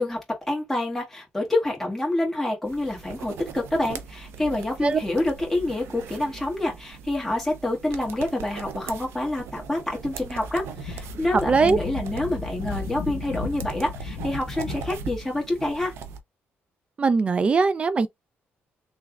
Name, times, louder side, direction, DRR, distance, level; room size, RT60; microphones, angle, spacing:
voice 1, 0.0-15.9, left 1 dB, 5° left, 1.7 m, -27 dB
sound 1, 2.7-16.2, right 6 dB, 85° right, 0.6 m, -40 dB
Wind, 10.4-15.3, left 4 dB, 90° left, 0.9 m, -35 dB
voice 2, 11.5-11.8 17.0-18.1, right 4 dB, 30° right, 0.4 m, -20 dB
3.3 x 3.3 x 2.3 m
cardioid pair, 135°, 4 cm